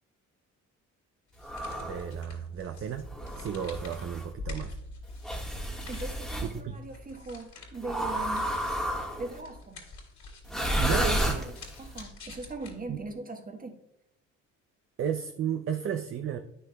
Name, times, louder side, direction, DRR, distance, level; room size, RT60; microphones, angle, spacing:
sound 1, 1.3-13.2, left 2 dB, 65° left, 2.8 m, -46 dB
sound 2, 1.4-2.1 3.1-4.3 5.2-6.5 7.8-9.4 10.4-11.9, equal, ahead, 1.4 m, -31 dB
voice 1, 1.8-3.1 3.3-4.8 6.4-6.7 10.8-11.4 12.9-13.0 15.0-16.4, right 8 dB, 45° right, 7 dB, 0.5 m, -33 dB
voice 2, 5.9-8.6 9.2-9.8 10.5-13.8, right 3 dB, 30° right, 5 dB, 1.2 m, -41 dB
9.6 x 6.5 x 2.2 m, 0.81 s
cardioid pair, 90°, 30 cm